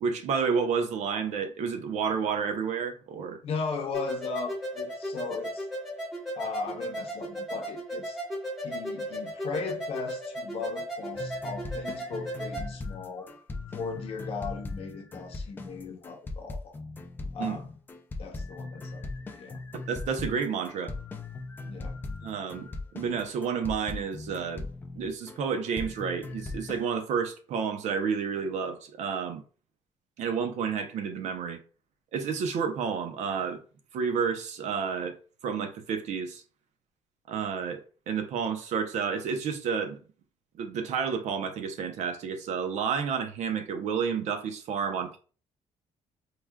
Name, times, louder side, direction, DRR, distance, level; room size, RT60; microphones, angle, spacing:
voice 1, 0.0-3.4 17.4-17.6 19.9-20.9 22.2-22.7 22.9-24.6 24.9-29.4 30.2-31.6 32.1-33.6 33.9-35.2 35.4-36.4 37.3-37.8 38.1-40.0 40.6-45.2, right 6 dB, 70° right, 0.6 m, -30 dB
voice 2, 3.4-5.7 6.4-8.2 8.6-13.3 13.7-16.8 17.3-17.7 18.2-19.6 21.6-22.0, left 5 dB, 50° left, 0.8 m, -37 dB
sound 1, 3.9-12.7, equal, ahead, 1.0 m, -35 dB
sound 2, 11.1-25.4 25.8-26.9, left 3 dB, 15° left, 0.4 m, -39 dB
4.7 x 2.4 x 2.2 m
cardioid pair, 165°, 13 cm